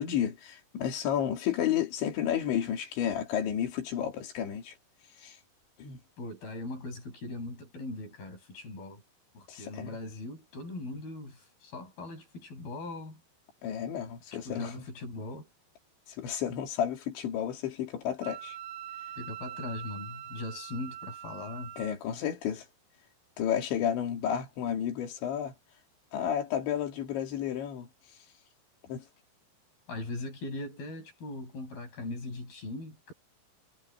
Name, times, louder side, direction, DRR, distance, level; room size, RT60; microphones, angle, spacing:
voice 1, 0.0-4.7 5.2-5.4 5.8-6.0 9.5-10.0 13.6-14.7 16.1-18.6 21.8-22.7 23.4-25.5 26.1-27.9 28.9-29.0, left 9 dB, 85° left, 5.0 m, -31 dB
voice 2, 6.2-9.0 9.3-13.2 14.5-15.5 19.2-21.7 29.9-33.1, left 2 dB, 55° left, 8.9 m, -40 dB
Wind instrument woodwind instrument, 18.2-22.0, right 11 dB, 80° right, 4.3 m, -43 dB
omnidirectional pair, 5.1 m